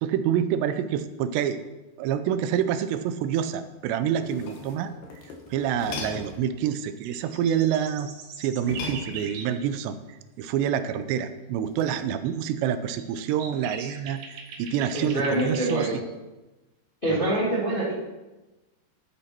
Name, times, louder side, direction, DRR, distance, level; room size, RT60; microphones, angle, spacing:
voice 1, 0.0-1.6 2.0-4.9 5.5-8.1 8.4-10.0 10.4-14.2 14.6-16.0 17.1-17.3, right 9 dB, 85° right, 11 dB, 2.8 m, -27 dB
sound 1, 4.1-6.5 8.6-9.6 11.7-12.0, left 5 dB, 75° left, 3.5 m, -39 dB
sound 2, 6.8-9.5 12.2-12.3 13.0-16.0, right 5 dB, 65° right, 2.4 m, -41 dB
voice 2, 14.9-16.0 17.0-17.9, right 1 dB, 30° left, -6 dB, 0.9 m, -25 dB
12.5 x 7.9 x 4.4 m, 1.1 s
omnidirectional pair, 4.9 m